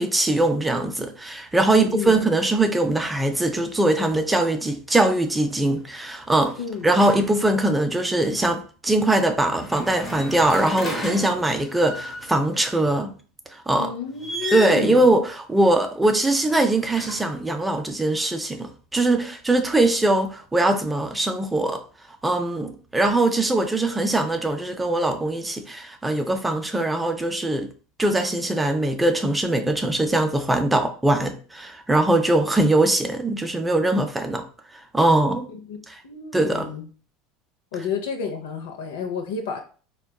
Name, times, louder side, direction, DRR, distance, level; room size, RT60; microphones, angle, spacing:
voice 1, 0.0-6.5 6.8-13.1 13.5-13.9 14.5-21.8 22.2-27.7 28.0-34.4 34.9-35.5 35.9-36.0 36.3-36.7, right 2 dB, 10° right, 0.4 m, -21 dB
voice 2, 1.7-2.1 6.6-6.9 13.8-15.1 35.5-35.8 36.0-36.9 37.7-39.6, left 6 dB, 80° left, 0.6 m, -30 dB
sound 1, 4.9-5.2 5.6-7.7 9.5-12.6 14.1-15.0 16.2-17.5, left 1 dB, 15° left, 1.0 m, -35 dB
3.5 x 2.2 x 2.2 m
hypercardioid pair, 95°, 0 cm